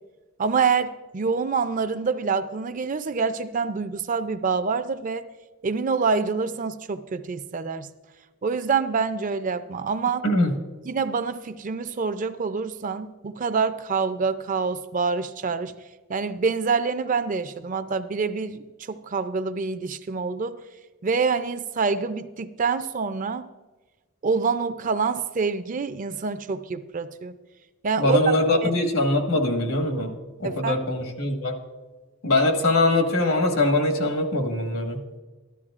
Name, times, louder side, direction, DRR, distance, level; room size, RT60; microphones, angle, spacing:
voice 1, 0.4-5.3 5.6-7.9 8.4-10.2 10.9-15.7 16.1-20.6 21.0-23.4 24.2-27.4 27.8-28.4 28.6-28.7 30.4-30.7, right 5 dB, 40° right, 11 dB, 0.4 m, -26 dB
voice 2, 10.2-10.5 28.0-30.1 30.4-31.5 32.2-35.0, left 2 dB, 85° left, 3 dB, 1.5 m, -22 dB
13.5 x 12.0 x 2.4 m, 1.2 s
head